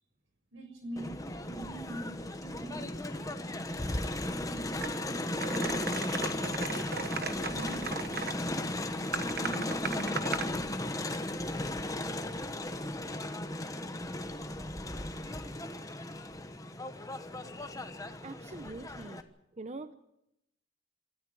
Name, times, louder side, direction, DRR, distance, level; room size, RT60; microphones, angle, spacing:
voice 1, 0.5-2.9 4.3-6.0 7.4-8.3 9.1-10.5, right 1 dB, 85° right, 6 dB, 6.4 m, -44 dB
Crowd, 1.0-19.2, left 1 dB, 15° left, 1.2 m, -36 dB
sound 1, 4.8-4.9 5.4-8.4 9.1-10.5, right 5 dB, 50° right, 1.3 m, -37 dB
voice 2, 18.2-19.3 19.6-19.9, right 2 dB, 35° right, 10 dB, 0.8 m, -43 dB
26.5 x 13.5 x 9.2 m, 0.82 s
head